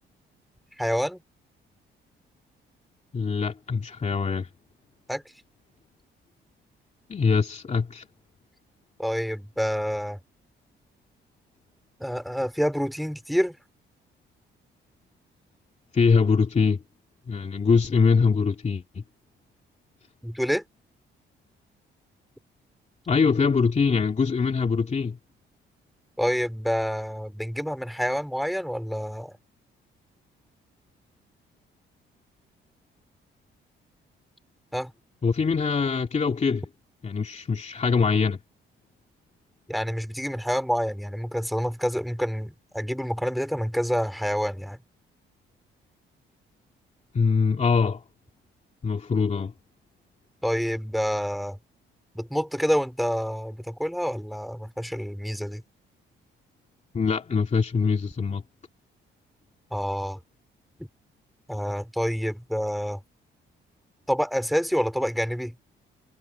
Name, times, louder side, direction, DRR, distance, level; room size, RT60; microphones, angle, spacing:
voice 1, 0.8-1.2 5.1-5.2 9.0-10.2 12.0-13.5 20.2-20.6 26.2-29.3 34.7-34.9 39.7-44.8 50.4-51.6 52.1-55.6 59.7-60.2 61.5-63.0 64.1-65.5, equal, ahead, 5.1 m, -27 dB
voice 2, 3.1-4.5 7.1-8.0 15.9-16.8 17.3-19.0 23.1-25.2 35.2-36.6 37.0-38.4 47.1-48.0 48.8-49.5 56.9-58.4, left 5 dB, 35° left, 2.6 m, -23 dB
cardioid pair, 90°, 20 cm